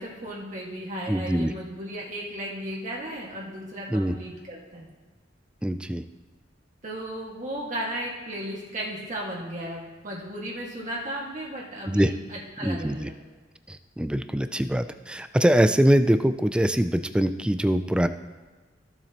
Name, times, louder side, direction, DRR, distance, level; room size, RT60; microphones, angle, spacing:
voice 1, 0.0-4.9 6.8-13.2, right 1 dB, 40° right, -4 dB, 1.7 m, -35 dB
voice 2, 1.1-1.5 3.9-4.1 5.6-6.0 11.9-12.1 12.6-13.1 13.7-18.1, equal, 5° right, 10 dB, 0.3 m, -23 dB
15.5 x 7.2 x 2.9 m, 1.3 s
head